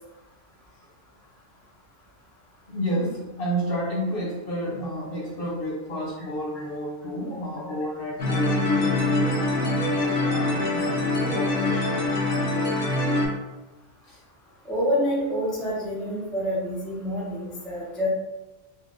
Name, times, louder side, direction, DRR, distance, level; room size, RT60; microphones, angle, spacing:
voice 1, 2.7-12.0 14.1-14.2, equal, 55° left, -4 dB, 0.9 m, -31 dB
sound 1, 8.2-13.3, left 2 dB, 80° left, 1.2 m, -24 dB
voice 2, 14.6-18.1, equal, ahead, -6 dB, 0.4 m, -27 dB
4.0 x 2.2 x 2.4 m, 1.0 s
omnidirectional pair, 1.3 m